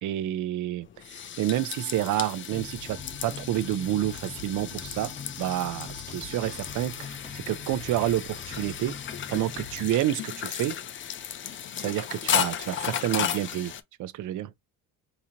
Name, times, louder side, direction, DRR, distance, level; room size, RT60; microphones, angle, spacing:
voice 1, 0.0-5.9 6.1-9.0 9.3-10.8 11.8-13.7 14.0-14.5, right 13 dB, 55° right, 0.5 m, -29 dB
sound 1, 0.8-13.8, left 9 dB, 35° left, 0.4 m, -34 dB
sound 2, 2.5-9.9, left 4 dB, 15° left, 1.2 m, -43 dB
3.8 x 2.9 x 2.8 m
cardioid pair, 115°, 38 cm